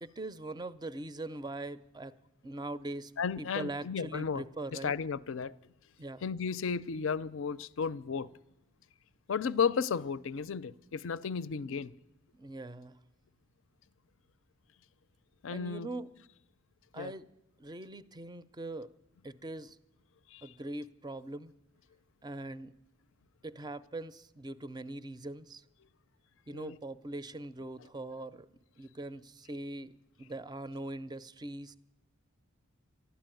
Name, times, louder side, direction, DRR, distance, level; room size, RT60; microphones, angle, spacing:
voice 1, 0.0-2.2 2.4-3.1 3.4-4.9 6.0-6.2 12.3-13.0 15.5-16.1 16.9-17.3 17.6-18.9 19.2-19.8 20.4-21.5 22.2-22.7 23.4-25.6 26.5-28.5 28.8-31.8, right 2 dB, 20° right, 0.5 m, -41 dB
voice 2, 3.2-4.4 4.7-5.5 6.2-8.3 9.3-11.9 15.4-15.9 17.0-17.1 20.3-20.4 26.5-26.8, left 6 dB, 65° left, 0.5 m, -33 dB
12.5 x 12.5 x 9.1 m
head